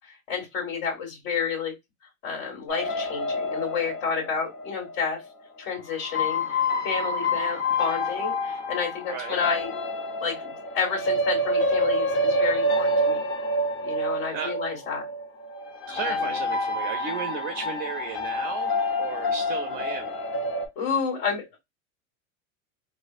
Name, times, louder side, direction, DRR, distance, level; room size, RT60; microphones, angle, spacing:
voice 1, 0.3-1.7 2.2-5.2 5.6-9.9 10.2-13.2 13.8-15.0 16.0-16.4 20.7-21.6, left 6 dB, 65° left, 1.7 m, -30 dB
sound 1, 2.7-5.2 6.0-20.7, left 1 dB, 30° left, 0.7 m, -27 dB
voice 2, 9.1-9.4 14.3-14.6 15.9-18.7 19.0-20.2, right 6 dB, 25° right, 0.4 m, -34 dB
3.2 x 2.0 x 2.4 m
hypercardioid pair, 110°, 41 cm